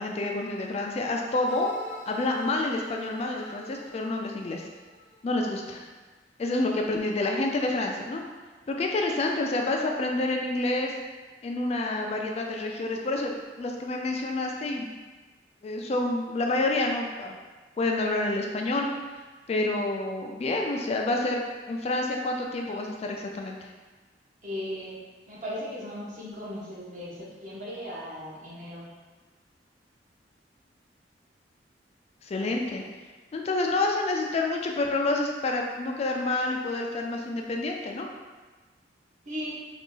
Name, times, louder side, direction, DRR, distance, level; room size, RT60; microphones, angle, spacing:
voice 1, 0.0-1.7 2.1-4.6 5.2-5.9 6.4-8.2 8.7-10.9 11.4-14.9 15.6-17.4 17.8-18.9 19.5-21.4 21.7-23.7 32.2-32.8 33.3-38.1, left 2 dB, 35° left, 1 dB, 0.3 m, -28 dB
sound 1, 1.5-5.5, equal, 65° right, 0.6 m, -45 dB
voice 2, 24.4-25.0 25.3-28.9 39.2-39.6, equal, 45° right, -7 dB, 1.1 m, -37 dB
3.9 x 2.4 x 3.7 m, 1.3 s
head